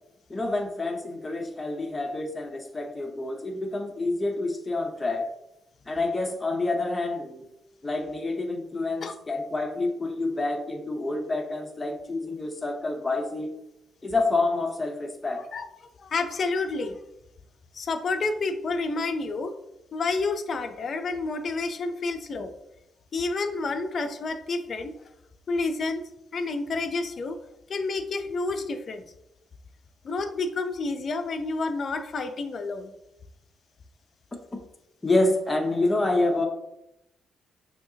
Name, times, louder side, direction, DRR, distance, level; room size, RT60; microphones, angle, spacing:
voice 1, 0.3-5.3 5.9-7.4 7.8-13.6 14.0-15.5 35.0-36.5, left 2 dB, 20° left, 3 dB, 0.8 m, -28 dB
voice 2, 16.0-17.0 17.7-19.5 19.9-22.5 23.1-25.1 25.5-26.0 26.3-27.4 27.7-29.0 30.0-32.9, left 3 dB, 50° left, 8 dB, 0.5 m, -29 dB
6.3 x 2.8 x 2.8 m, 0.86 s
cardioid pair, 85°, 0 cm